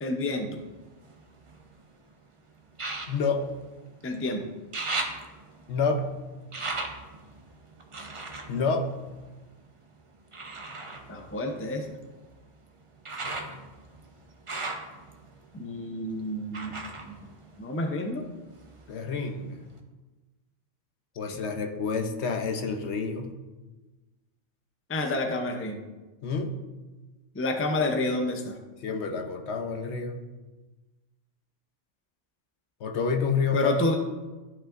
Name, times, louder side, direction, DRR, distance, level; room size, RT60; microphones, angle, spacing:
voice 1, 0.0-0.5 4.0-4.4 11.1-11.8 15.5-17.1 17.6-18.2 24.9-25.8 27.3-28.6 33.5-33.9, left 2 dB, 15° left, 3 dB, 0.5 m, -29 dB
sound 1, 0.6-1.9 2.7-4.2 4.5-9.7 10.3-18.2 18.5-19.3 19.8-19.9, right 3 dB, 30° right, 0.7 m, -38 dB
voice 2, 3.1-3.4 5.7-6.1 8.5-8.9 13.2-13.6 18.9-19.6 21.2-23.3 26.2-26.6 28.8-30.2 32.8-33.7, left 4 dB, 65° left, 4 dB, 1.0 m, -29 dB
13.5 x 5.4 x 2.5 m, 1.2 s
omnidirectional pair, 1.2 m